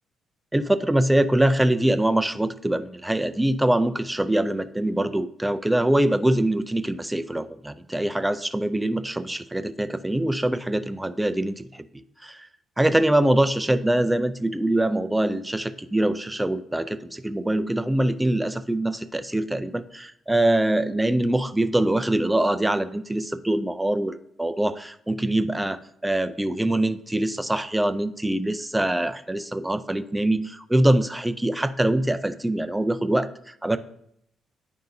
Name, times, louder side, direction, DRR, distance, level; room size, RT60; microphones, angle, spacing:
voice 1, 0.5-12.5 12.8-33.8, right 1 dB, 10° right, 11 dB, 0.3 m, -24 dB
10.0 x 5.3 x 2.6 m, 0.74 s
cardioid pair, 90°, 0 cm